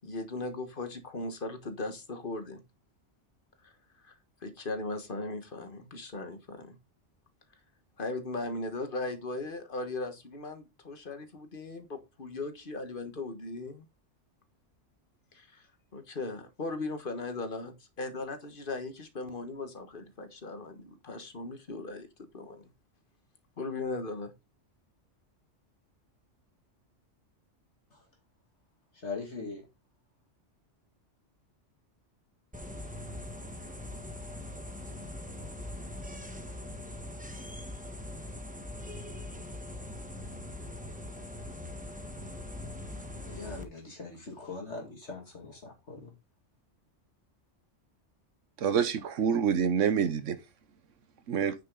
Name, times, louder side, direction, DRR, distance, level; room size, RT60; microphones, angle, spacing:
voice 1, 0.0-2.6 3.6-3.7 4.0-4.1 4.4-6.7 8.0-13.9 15.3-15.6 15.9-22.1 22.3-22.6 23.6-24.3, left 2 dB, 45° left, 1.6 m, -38 dB
voice 2, 28.9-29.6 43.2-46.1, left 4 dB, 65° left, 2.6 m, -41 dB
sound 1, 32.5-43.6, left 1 dB, 5° right, 1.3 m, -42 dB
voice 3, 48.6-50.4 51.3-51.5, right 7 dB, 90° right, 1.2 m, -26 dB
9.3 x 6.5 x 3.8 m
omnidirectional pair, 1.3 m